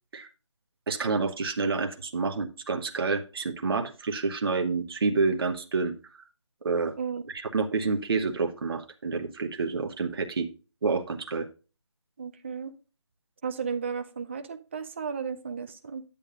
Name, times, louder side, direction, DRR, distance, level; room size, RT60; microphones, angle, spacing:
voice 1, 0.9-5.9 6.6-6.9 7.3-10.5 10.8-11.5, right 4 dB, 50° right, 1.0 m, -28 dB
voice 2, 12.2-12.7 13.4-16.0, right 6 dB, 25° right, 0.5 m, -34 dB
10.5 x 8.6 x 2.4 m
figure-of-eight pair, 165°, 16 cm